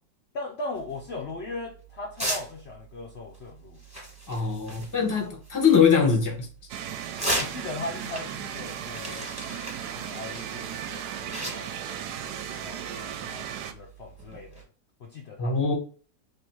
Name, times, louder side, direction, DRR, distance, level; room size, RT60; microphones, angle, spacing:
voice 1, 0.3-3.8 5.1-5.2 7.4-9.3 10.0-11.8 12.1-14.6 15.0-15.6, left 2 dB, 65° left, 0.6 m, -39 dB
sound 1, 0.7-14.6, right 1 dB, 5° right, 1.1 m, -38 dB
voice 2, 4.3-6.5 15.4-15.7, left 6 dB, 15° left, 0.7 m, -22 dB
sound 2, 6.7-13.7, right 9 dB, 75° right, 1.0 m, -36 dB
3.2 x 2.7 x 4.5 m
omnidirectional pair, 1.9 m